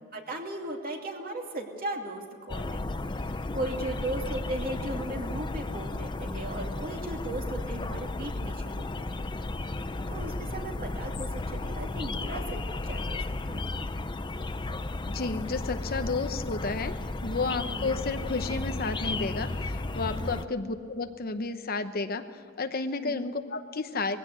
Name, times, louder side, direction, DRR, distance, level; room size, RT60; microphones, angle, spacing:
voice 1, 0.1-2.9 3.2-9.2 10.1-13.8 17.7-17.9 20.2-20.5 23.0-23.3, right 1 dB, 45° right, 1 dB, 2.7 m, -37 dB
sound 1, 2.5-20.5, left 2 dB, 20° left, 0.5 m, -34 dB
voice 2, 15.1-16.9 17.2-24.2, left 3 dB, 45° left, 8 dB, 0.9 m, -32 dB
21.0 x 16.0 x 8.2 m, 2.3 s
head